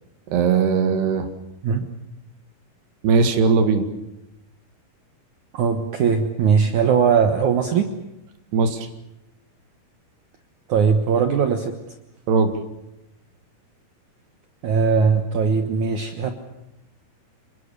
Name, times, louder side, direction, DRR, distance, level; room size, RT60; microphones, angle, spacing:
voice 1, 0.3-1.3 3.0-3.9 8.5-8.9 12.3-12.5, right 5 dB, 80° right, 7 dB, 4.0 m, -19 dB
voice 2, 5.5-7.9 10.7-11.7 14.6-16.3, right 6 dB, 60° right, 6 dB, 2.2 m, -19 dB
26.5 x 23.0 x 6.9 m, 0.92 s
omnidirectional pair, 4.8 m